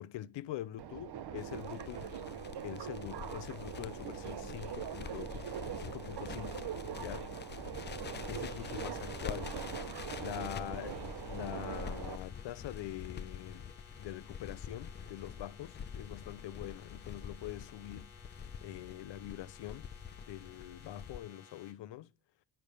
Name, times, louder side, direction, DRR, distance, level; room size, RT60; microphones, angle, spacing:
voice 1, 0.0-2.2 2.6-6.7 6.9-7.3 8.3-9.6 10.2-13.7 14.0-18.1 18.6-22.1, left 13 dB, 80° left, 0.7 m, -44 dB
Subway metro underground, 0.8-12.2, right 9 dB, 65° right, 1.0 m, -42 dB
Crackle, 1.4-21.2, left 7 dB, 25° left, 0.3 m, -46 dB
sound 1, 8.3-21.7, left 5 dB, 45° left, 4.0 m, -59 dB
10.0 x 3.5 x 6.5 m
cardioid pair, 140°, 42 cm